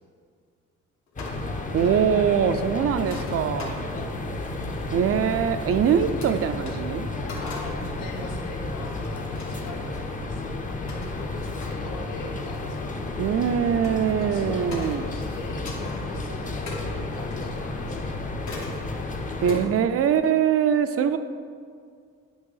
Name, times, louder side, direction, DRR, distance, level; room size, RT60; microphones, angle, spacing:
sound 1, 1.1-1.5 1.8-2.0 3.0-4.2 5.3-5.4 6.2-6.3 6.6-6.8 7.3-7.8 8.1-8.3 8.8-10.1 10.9-11.1 11.6-11.8 12.5-13.9 14.7-15.1 15.4-16.0 16.7-17.7 18.5-18.8 19.5-19.6, left 3 dB, 65° left, 1.3 m, -41 dB
sound 2, 1.2-19.7, left 2 dB, 25° left, 0.6 m, -32 dB
voice 1, 1.7-3.8 4.9-7.1 13.2-15.0 19.4-21.2, right 8 dB, 50° right, 11 dB, 0.4 m, -23 dB
voice 2, 7.1-13.1 14.0-18.2, left 2 dB, 90° left, 0 dB, 0.9 m, -42 dB
8.0 x 3.0 x 5.5 m, 2.1 s
cardioid pair, 90°, 30 cm